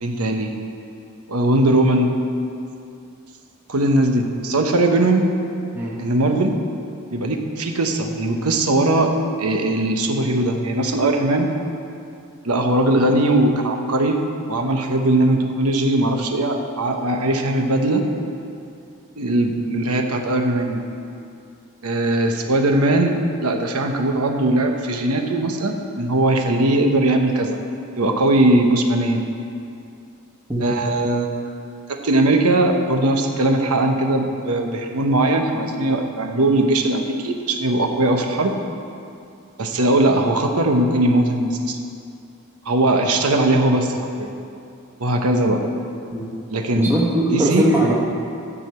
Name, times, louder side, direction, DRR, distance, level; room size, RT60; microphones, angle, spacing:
voice 1, 0.0-0.5 1.3-2.1 3.7-5.3 6.0-6.6 7.1-11.5 12.4-14.2 14.5-18.1 19.2-20.8 21.8-27.6 28.0-29.2 30.6-31.3 31.9-38.6 39.6-41.8 42.6-44.3 45.0-45.6 46.5-46.9 47.3-47.6, right 1 dB, 80° right, 3 dB, 1.0 m, -19 dB
voice 2, 46.8-47.9, right 1 dB, 10° right, -5 dB, 1.2 m, -21 dB
12.5 x 5.0 x 7.7 m, 2.5 s
head